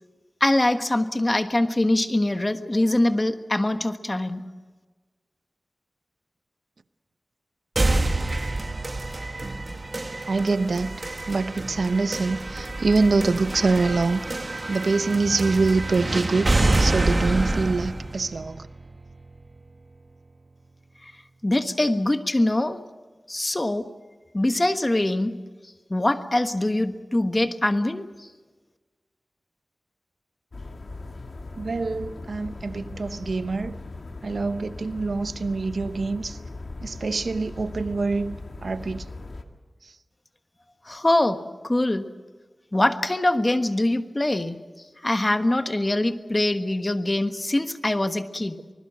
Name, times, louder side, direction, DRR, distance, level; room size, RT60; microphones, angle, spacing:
voice 1, 0.4-4.4 21.0-21.1 21.4-22.8 23.3-23.9 24.3-25.3 25.9-28.3 40.9-42.0 42.7-44.6 45.0-48.6, left 1 dB, 30° left, 8 dB, 1.4 m, -23 dB
sound 1, 7.8-19.7, right 2 dB, 45° right, 1.4 m, -27 dB
voice 2, 10.3-16.5 16.8-18.7 31.6-33.8 34.2-36.4 36.8-39.1, right 3 dB, 80° right, 11 dB, 0.9 m, -25 dB
sound 2, 30.5-39.4, left 2 dB, 65° left, 2.1 m, -39 dB
25.0 x 20.5 x 6.3 m, 1.3 s
wide cardioid pair, 70°, 0 cm